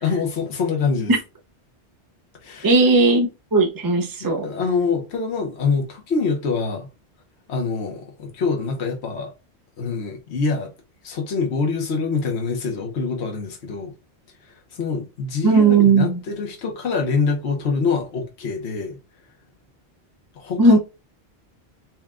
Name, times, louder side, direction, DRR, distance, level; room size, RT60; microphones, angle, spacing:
voice 1, 0.0-1.1 2.4-2.7 4.2-6.9 7.5-9.3 9.8-10.7 11.0-13.9 14.4-19.0 20.3-20.8, left 5 dB, 75° left, 1.2 m, -25 dB
voice 2, 2.6-4.5 15.4-16.2 20.6-20.8, right 3 dB, 25° right, 0.5 m, -16 dB
4.4 x 2.2 x 3.6 m
omnidirectional pair, 1.1 m